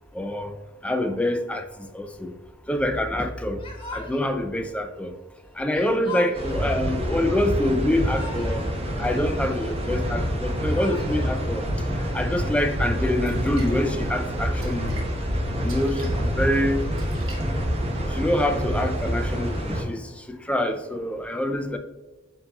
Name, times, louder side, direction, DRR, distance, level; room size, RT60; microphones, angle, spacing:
voice 1, 0.1-0.5 0.8-1.6 1.9-2.3 2.7-3.6 3.9-5.1 5.6-8.6 9.0-11.6 12.1-14.9 15.6-16.8 18.1-21.8, left 1 dB, 5° left, 6 dB, 0.3 m, -26 dB
Yell / Crying sobbing, 3.6-4.4 5.7-6.7 7.7-8.7 9.0-9.9 10.5-11.4, left 4 dB, 25° left, 1.1 m, -39 dB
sound 1, 6.3-19.8, equal, 30° right, 0.9 m, -27 dB
Splash splatter, 12.8-18.1, equal, 85° right, 1.2 m, -34 dB
7.6 x 2.7 x 2.3 m, 1.2 s
head